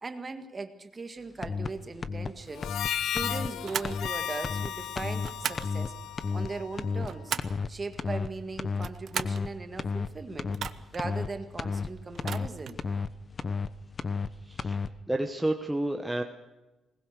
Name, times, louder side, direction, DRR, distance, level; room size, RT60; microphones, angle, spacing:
voice 1, 0.0-2.7 3.0-6.0 6.3-7.3 7.7-10.5 10.9-12.8, right 3 dB, 25° right, 8 dB, 1.8 m, -39 dB
sound 1, 1.4-1.7 2.0-2.3 2.6-2.9 3.2-3.5 3.8-4.1 4.4-4.7 5.0-5.3 5.6-5.9 6.2-6.5 6.8-7.1 7.4-7.7 8.0-8.3 8.6-8.9 9.2-9.5 9.8-10.1 10.4-10.7 11.0-11.3 11.6-11.9 12.2-12.5 12.8-13.1 13.4-13.7 14.0-14.3 14.6-14.9, left 5 dB, 30° left, 0.9 m, -32 dB
Harmonica, 2.5-7.2, left 10 dB, 80° left, 0.7 m, -35 dB
sound 2, 3.6-4.0 5.2-5.7 6.8-7.6 8.7-9.4 10.5-11.1 12.1-12.8, right 8 dB, 55° right, 0.9 m, -36 dB
voice 2, 14.5-14.8 15.1-16.2, right 1 dB, 5° right, 4 dB, 1.1 m, -30 dB
21.0 x 19.5 x 6.6 m, 1.1 s
cardioid pair, 150°, 0 cm